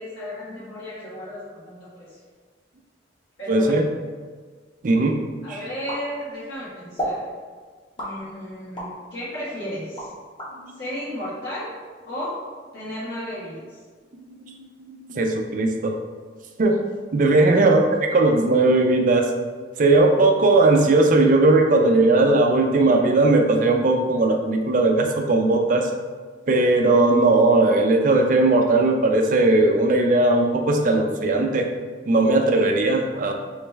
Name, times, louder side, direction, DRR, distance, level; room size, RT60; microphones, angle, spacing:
voice 1, 0.0-2.2 3.4-3.9 5.4-7.2 8.0-10.1 10.8-11.7 12.0-12.3 12.7-13.6, equal, 75° left, -10 dB, 1.2 m, -33 dB
voice 2, 3.5-3.9 4.8-5.2 5.5-5.6 14.4-16.0 16.6-16.8 17.1-17.8 18.1-19.3 19.8-25.9 26.5-31.7 32.1-33.3, right 2 dB, 45° right, 3 dB, 0.4 m, -18 dB
sound 1, 5.9-6.6 7.0-7.2 8.0-9.0 9.5-10.5, right 1 dB, 25° left, 0.8 m, -31 dB
3.1 x 3.1 x 3.3 m, 1.5 s
head